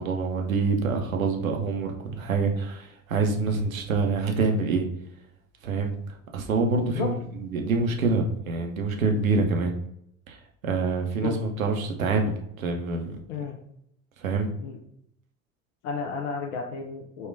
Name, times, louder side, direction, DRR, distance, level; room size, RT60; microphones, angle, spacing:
voice 1, 0.0-4.9 5.6-5.9 6.3-9.7 10.3-10.4 10.6-13.2 14.2-14.5, right 4 dB, 80° right, 3 dB, 0.7 m, -26 dB
voice 2, 15.8-17.3, left 4 dB, 55° left, 2 dB, 0.6 m, -32 dB
4.2 x 2.3 x 3.3 m, 0.73 s
figure-of-eight pair, 70°, 41 cm